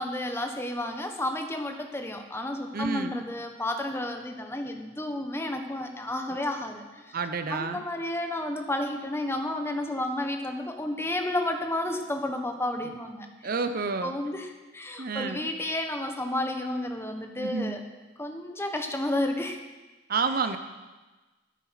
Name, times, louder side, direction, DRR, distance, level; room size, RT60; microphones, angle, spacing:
voice 1, 0.0-7.2 7.5-13.3 14.0-17.8 18.2-19.6, left 1 dB, 10° left, 5 dB, 1.2 m, -31 dB
voice 2, 2.7-3.2 7.1-7.8 13.4-14.1 15.0-15.5 17.4-17.8 20.1-20.6, right 4 dB, 45° right, 9 dB, 0.8 m, -29 dB
12.5 x 12.5 x 5.9 m, 1.2 s
head